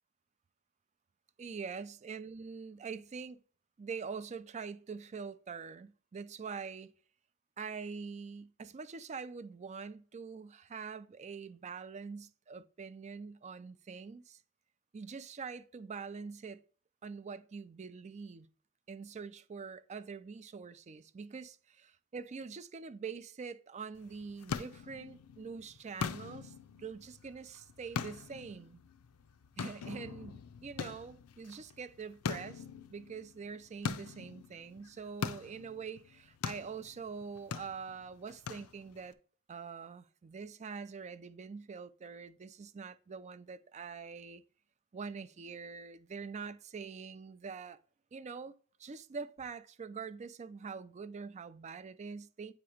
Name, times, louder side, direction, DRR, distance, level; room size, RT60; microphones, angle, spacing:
voice 1, 1.4-3.4 3.8-6.9 7.6-14.4 14.9-16.6 17.0-18.5 18.9-21.6 22.1-28.8 29.6-32.6 32.9-39.2 39.5-44.4 44.9-47.8 48.1-48.5 48.8-52.5, right 5 dB, 30° right, 0.4 m, -44 dB
sound 1, 24.0-39.1, left 6 dB, 85° left, 0.5 m, -43 dB
8.5 x 2.9 x 4.9 m
head